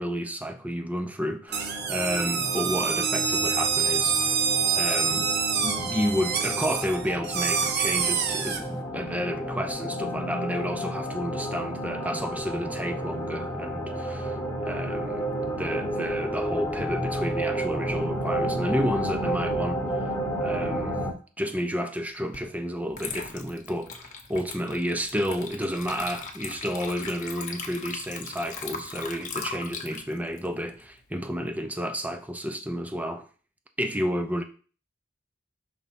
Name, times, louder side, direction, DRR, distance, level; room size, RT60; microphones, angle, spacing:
voice 1, 0.0-4.4 4.7-5.3 5.6-14.4 14.6-15.3 15.5-19.9 20.4-21.0 21.4-33.3 33.8-34.4, equal, 10° right, 0.6 m, -31 dB
sound 1, 1.5-21.1, equal, 15° left, 1.0 m, -31 dB
sound 2, 1.5-8.6, right 6 dB, 55° right, 0.7 m, -26 dB
Water / Liquid, 22.3-22.5 22.9-31.5, left 5 dB, 40° left, 0.9 m, -39 dB
5.3 x 3.6 x 5.7 m
head